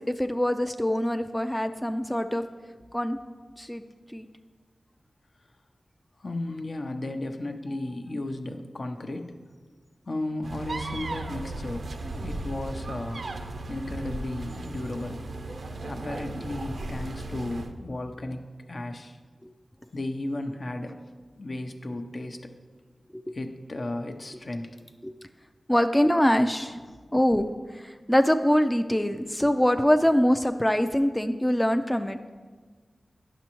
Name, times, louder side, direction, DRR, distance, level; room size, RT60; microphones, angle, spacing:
voice 1, 0.0-2.4 2.9-3.2 3.6-3.8 4.1-4.3 19.4-19.5 23.1-23.4 25.0-25.1 25.7-26.8 27.1-32.2, equal, 10° left, 8 dB, 0.4 m, -24 dB
voice 2, 6.2-9.4 10.1-13.3 13.7-15.2 15.9-19.2 19.9-21.0 21.3-22.5 23.3-24.8, left 2 dB, 55° left, 5 dB, 0.6 m, -34 dB
sound 1, 10.4-17.7, right 2 dB, 75° right, 0.5 m, -36 dB
10.0 x 6.1 x 3.0 m, 1.5 s
cardioid pair, 45°, 0 cm